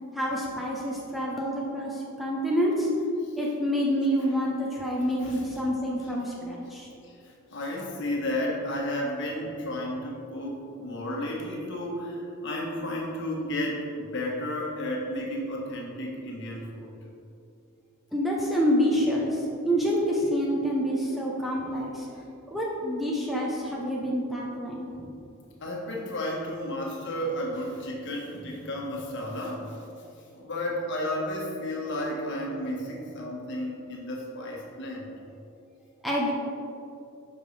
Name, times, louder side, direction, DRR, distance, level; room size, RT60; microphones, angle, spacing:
voice 1, 0.1-2.9 3.4-6.9 18.1-22.2 22.5-25.1 36.0-36.3, equal, ahead, -5 dB, 0.8 m, -27 dB
voice 2, 3.2-3.6 5.2-5.4 6.0-6.1 7.0-16.9 25.6-29.8 30.3-35.1, left 1 dB, 55° left, -2 dB, 1.4 m, -33 dB
11.0 x 5.3 x 3.3 m, 2.7 s
head